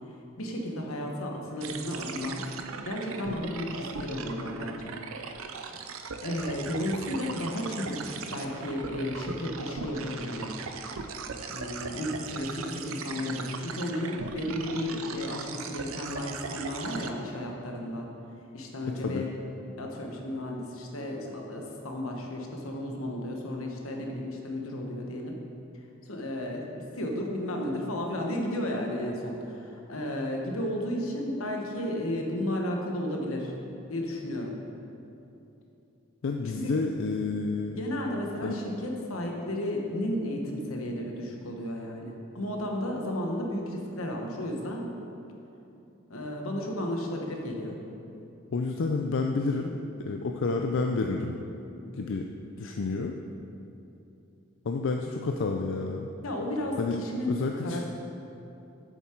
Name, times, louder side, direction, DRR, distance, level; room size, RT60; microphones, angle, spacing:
voice 1, 0.4-2.4 2.8-4.9 6.2-10.6 11.5-18.1 18.5-19.3 19.8-25.4 26.1-33.5 33.9-34.5 36.5-36.7 37.8-44.9 46.1-47.8 56.2-57.8, left 1 dB, 85° left, 1 dB, 1.2 m, -33 dB
sound 1, 1.6-17.1, right 5 dB, 80° right, 0.5 m, -39 dB
voice 2, 18.9-19.2 36.2-37.8 38.4-38.5 48.5-51.4 51.9-52.2 52.6-53.2 54.6-56.1 56.8-57.0 57.3-57.8, left 3 dB, 60° left, 3 dB, 0.4 m, -29 dB
8.1 x 7.2 x 4.5 m, 2.8 s
head